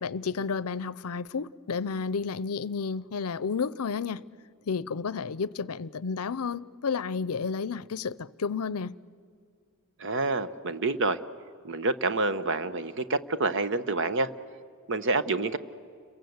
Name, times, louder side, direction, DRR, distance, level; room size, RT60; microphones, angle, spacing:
voice 1, 0.0-4.2 4.7-8.9, left 5 dB, 75° left, 0.6 m, -31 dB
voice 2, 10.0-11.2 11.6-14.3 14.9-15.6, right 3 dB, 55° right, 1.0 m, -27 dB
30.0 x 23.0 x 8.0 m
head